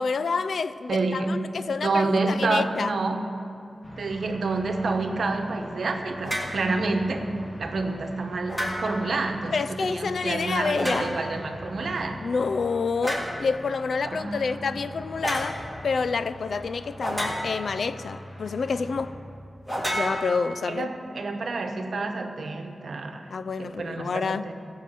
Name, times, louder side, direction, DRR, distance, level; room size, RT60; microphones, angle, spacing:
voice 1, 0.0-2.9 9.5-11.2 12.2-19.1 19.9-20.9 23.3-24.5, left 4 dB, 80° left, 14 dB, 0.4 m, -28 dB
voice 2, 0.9-1.3 1.8-3.2 4.0-7.3 7.6-12.2 14.0-14.5 20.6-23.3 23.6-24.5, right 3 dB, 80° right, 5 dB, 1.0 m, -28 dB
sound 1, 3.8-19.4, left 1 dB, 30° left, 2.1 m, -43 dB
sound 2, 6.2-6.6 8.5-9.1 10.7-11.4 13.0-13.4 15.2-15.5 17.0-17.8 19.7-20.8, equal, 5° left, 3.2 m, -30 dB
15.5 x 5.7 x 7.5 m, 2.6 s
wide cardioid pair, 80°, 0 cm